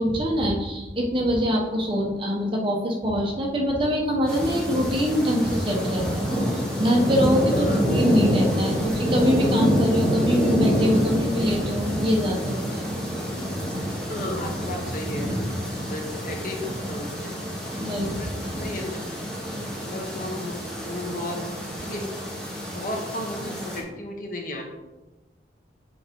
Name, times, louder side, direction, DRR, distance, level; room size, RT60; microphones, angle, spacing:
voice 1, 0.0-7.7 7.9-12.9 17.8-18.2, equal, 30° right, -1 dB, 1.1 m, -24 dB
sound 1, 4.3-23.8, equal, 5° left, 1.3 m, -27 dB
voice 2, 7.5-7.9 14.1-15.5 15.8-17.4 18.1-18.3 18.6-19.1 19.8-21.4 21.8-22.0 22.7-24.7, left 1 dB, 45° left, 1 dB, 1.1 m, -34 dB
7.0 x 4.8 x 3.8 m, 1.1 s
head